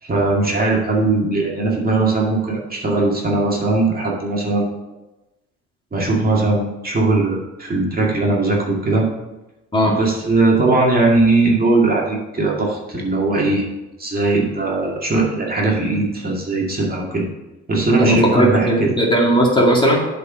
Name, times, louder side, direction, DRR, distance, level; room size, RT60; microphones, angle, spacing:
voice 1, 0.0-4.7 5.9-9.1 9.9-13.7 14.0-17.2 17.7-18.9, right 2 dB, 30° right, -3 dB, 2.2 m, -19 dB
voice 2, 18.0-20.0, equal, 15° left, -2 dB, 2.1 m, -16 dB
8.1 x 4.9 x 6.2 m, 1.0 s
cardioid pair, 90°, 30 cm